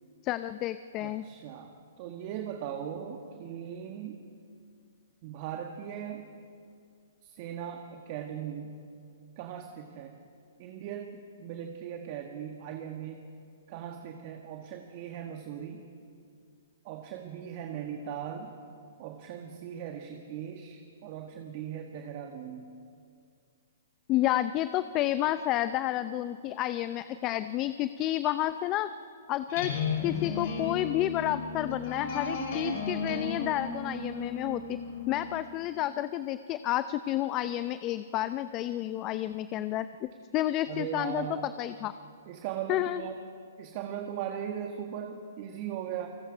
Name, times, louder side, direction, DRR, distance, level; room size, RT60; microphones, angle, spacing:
voice 1, 0.2-1.3 24.1-28.9 29.3-29.7 30.0-34.8 35.1-41.9 42.7-43.0, left 14 dB, 30° left, 13 dB, 0.5 m, -30 dB
voice 2, 1.0-4.2 5.2-6.3 7.2-8.8 9.4-10.2 10.6-13.3 13.7-15.8 16.8-18.5 19.0-22.7 40.7-41.5 42.2-43.1 43.6-46.1, right 9 dB, 45° right, 4 dB, 1.5 m, -39 dB
sound 1, 29.5-35.4, left 4 dB, 50° left, 4.7 m, -34 dB
28.5 x 18.5 x 5.0 m, 2.3 s
hypercardioid pair, 135°, 0 cm